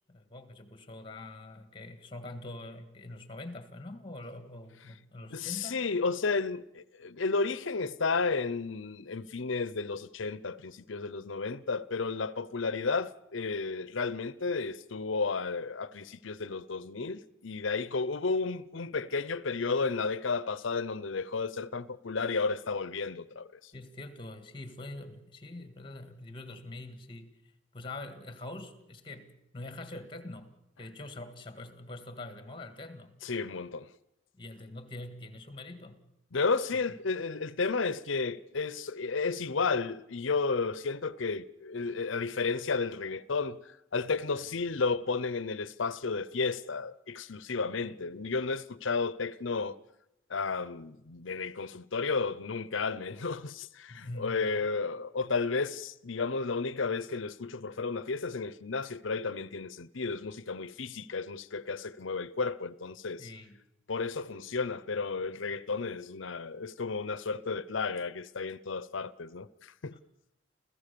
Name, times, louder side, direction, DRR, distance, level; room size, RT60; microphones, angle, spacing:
voice 1, 0.1-5.8 23.7-27.4 27.7-33.1 34.3-36.1 36.9-37.0 53.9-54.7 63.2-63.6 69.9-70.0, left 2 dB, 25° left, 1.8 m, -44 dB
voice 2, 5.3-23.5 33.2-33.9 36.3-43.6 43.9-49.8 50.3-63.3 63.9-69.9, left 4 dB, 75° left, 0.7 m, -32 dB
28.5 x 15.0 x 6.9 m
head